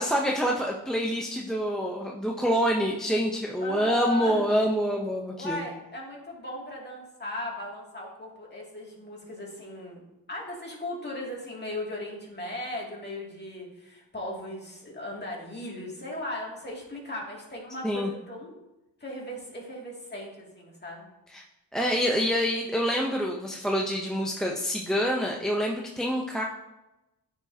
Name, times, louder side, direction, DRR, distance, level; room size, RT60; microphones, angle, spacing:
voice 1, 0.0-5.7 17.8-18.1 21.3-21.4 21.7-26.4, equal, ahead, 0 dB, 0.6 m, -26 dB
voice 2, 3.6-4.4 5.4-10.0 10.3-18.5 19.0-21.1, left 1 dB, 25° left, -3 dB, 2.2 m, -37 dB
9.1 x 5.0 x 2.7 m, 0.97 s
cardioid pair, 80°, 42 cm